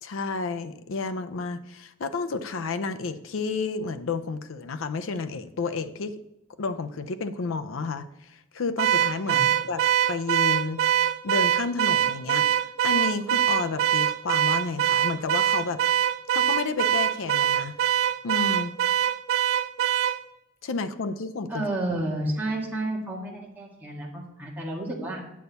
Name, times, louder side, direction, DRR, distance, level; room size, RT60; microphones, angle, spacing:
voice 1, 0.0-6.2 6.6-9.8 10.1-10.8 11.2-12.5 12.8-15.8 16.3-17.8 18.2-18.7 20.6-21.6, left 4 dB, 85° left, 10 dB, 0.5 m, -31 dB
Car / Alarm, 8.8-20.2, right 10 dB, 90° right, 0.4 m, -23 dB
voice 2, 21.5-25.2, right 1 dB, 10° right, -3 dB, 1.7 m, -31 dB
8.5 x 6.8 x 4.1 m, 0.88 s
head